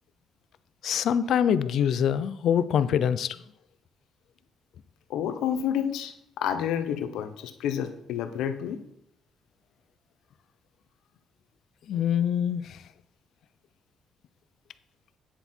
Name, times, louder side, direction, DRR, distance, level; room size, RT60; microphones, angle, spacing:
voice 1, 0.8-3.4 11.9-12.8, left 8 dB, 70° left, 14 dB, 0.6 m, -24 dB
voice 2, 5.1-8.8, left 9 dB, 90° left, 9 dB, 1.0 m, -30 dB
9.4 x 7.9 x 4.5 m, 0.79 s
cardioid pair, 90°, 0 cm